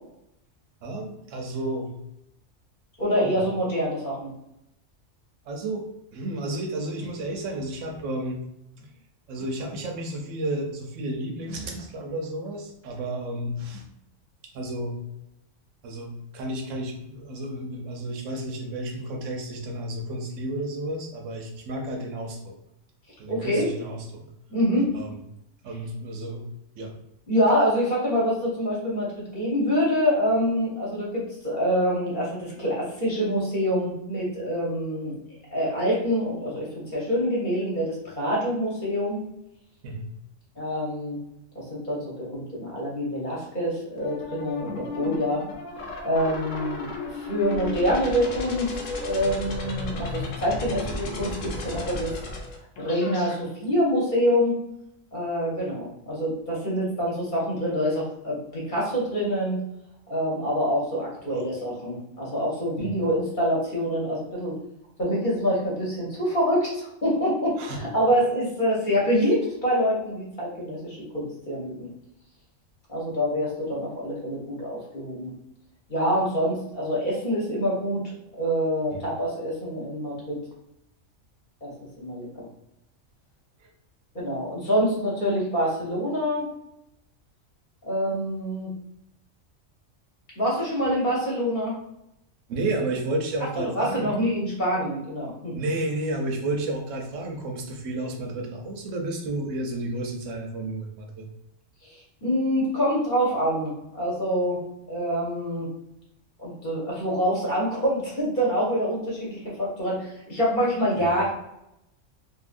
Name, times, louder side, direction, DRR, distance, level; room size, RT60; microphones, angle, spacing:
voice 1, 0.8-1.9 3.2-3.4 5.5-5.9 6.1-8.4 8.8-8.9 9.3-13.8 14.5-15.0 15.8-22.6 23.2-24.3 24.9-25.2 25.6-26.5 26.8-26.9 39.8-40.1 61.3-61.4 62.8-62.9 67.6-67.8 78.9-79.1 83.6-83.7 92.5-94.1 95.5-101.3 111.0-111.2, right 1 dB, 75° right, 2 dB, 1.0 m, -32 dB
voice 2, 3.0-4.3 23.3-23.7 24.5-24.8 27.3-35.1 35.5-39.2 40.6-41.2 41.5-45.4 46.0-46.9 47.2-48.7 49.0-52.1 52.8-54.6 55.1-59.6 60.1-64.6 65.0-71.9 72.9-75.3 75.9-78.0 78.4-80.4 81.6-82.5 84.1-86.4 87.9-88.7 90.4-91.7 93.7-95.5 102.2-104.6 104.9-105.7 106.4-111.3, equal, 45° left, -6 dB, 1.0 m, -26 dB
sound 1, 44.0-53.3, left 3 dB, 80° left, 1.0 m, -34 dB
2.7 x 2.6 x 2.5 m, 0.83 s
omnidirectional pair, 1.3 m